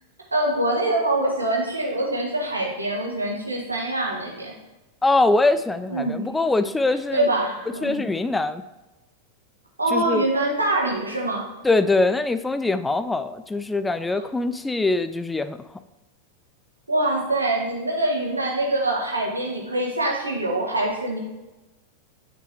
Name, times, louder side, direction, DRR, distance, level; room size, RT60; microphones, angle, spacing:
voice 1, 0.3-4.5 5.9-6.2 7.1-8.1 9.8-11.4 16.9-21.2, right 1 dB, 80° right, -2 dB, 1.5 m, -24 dB
voice 2, 5.0-7.2 7.8-8.6 9.9-10.3 11.6-15.6, left 2 dB, 10° left, 12 dB, 0.3 m, -22 dB
9.7 x 5.4 x 3.0 m, 1.0 s
figure-of-eight pair, 90°, 0 cm